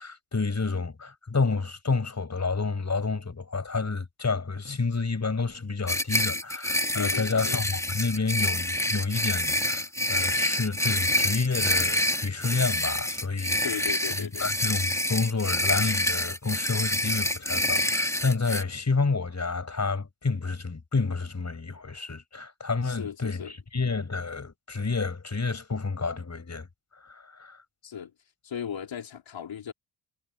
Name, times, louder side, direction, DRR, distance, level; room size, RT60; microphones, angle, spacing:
voice 1, 0.0-13.7 14.1-26.7 26.9-27.6, left 4 dB, 35° left, 5.3 m, -29 dB
sound 1, 5.9-18.6, left 1 dB, 5° left, 2.2 m, -27 dB
voice 2, 7.0-7.6 13.6-14.5 22.8-23.5 27.8-28.1 28.4-29.7, left 8 dB, 70° left, 3.6 m, -36 dB
supercardioid pair, 55°, 48 cm